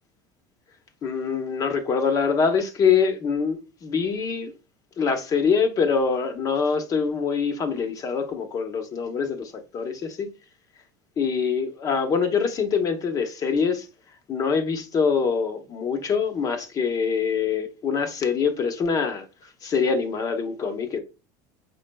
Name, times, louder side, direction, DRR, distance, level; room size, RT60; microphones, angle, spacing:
voice 1, 1.0-4.5 5.0-10.3 11.2-13.8 14.3-19.2 19.6-21.0, left 6 dB, 35° left, 0.9 m, -24 dB
5.4 x 4.1 x 2.2 m
supercardioid pair, 125°, 10 cm